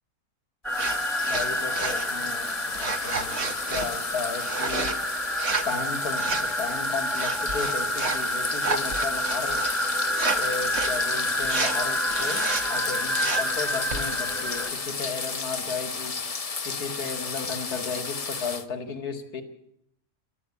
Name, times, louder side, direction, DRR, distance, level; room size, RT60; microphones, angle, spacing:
sound 1, 0.6-14.7, equal, ahead, 1.3 m, -29 dB
sound 2, 0.7-18.6, left 4 dB, 30° left, 0.7 m, -33 dB
sound 3, 0.8-1.0 1.2-2.1 2.7-3.9 4.4-4.9 5.3-5.7 6.2-6.5 7.1-8.2 8.6-9.7 10.1-10.4 10.6-11.0 11.4-11.8 12.1-12.7 13.1-13.5 13.9-14.1, right 4 dB, 45° right, 1.7 m, -31 dB
voice 1, 1.3-5.0 5.6-9.6 10.3-16.2 16.6-19.4, left 5 dB, 75° left, 7 dB, 2.4 m, -34 dB
29.0 x 12.5 x 8.4 m, 0.75 s
omnidirectional pair, 1.7 m